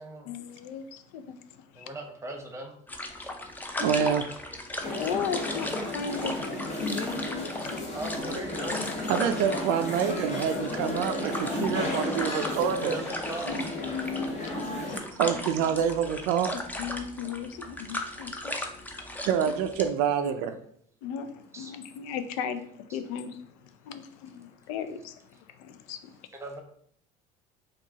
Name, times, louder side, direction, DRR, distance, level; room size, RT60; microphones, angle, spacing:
voice 1, 0.3-1.9 3.8-3.9 5.0-6.4 6.8-7.8 11.8-12.0 13.4-15.0 16.8-18.9 21.0-26.3, left 7 dB, 85° left, 10 dB, 0.4 m, -37 dB
voice 2, 1.7-2.8 3.2-3.3 7.2-7.6 7.9-8.9 12.8-13.6 21.5-21.7 22.9-23.0 26.3-26.6, right 2 dB, 15° right, 2 dB, 0.8 m, -39 dB
sound 1, 2.9-19.9, left 1 dB, 10° left, 0.5 m, -37 dB
voice 3, 3.8-4.2 9.1-12.9 15.2-16.5 19.3-20.5, right 8 dB, 75° right, 8 dB, 0.4 m, -26 dB
sound 2, 4.8-15.0, left 2 dB, 40° left, 1.0 m, -33 dB
4.5 x 2.4 x 2.8 m, 0.65 s
supercardioid pair, 100°, 17 cm